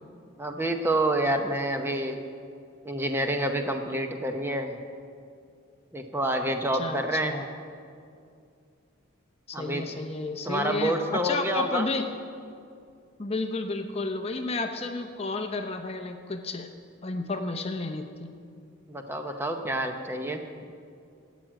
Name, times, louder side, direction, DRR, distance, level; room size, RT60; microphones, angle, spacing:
voice 1, 0.4-2.2 2.8-4.8 5.9-7.4 9.5-9.8 10.4-11.9 18.9-20.4, right 1 dB, 10° right, 5 dB, 0.7 m, -28 dB
voice 2, 6.7-7.5 9.5-12.1 13.2-16.7 17.0-18.3, left 3 dB, 30° left, 6 dB, 0.6 m, -32 dB
13.5 x 9.1 x 7.5 m, 2.4 s
head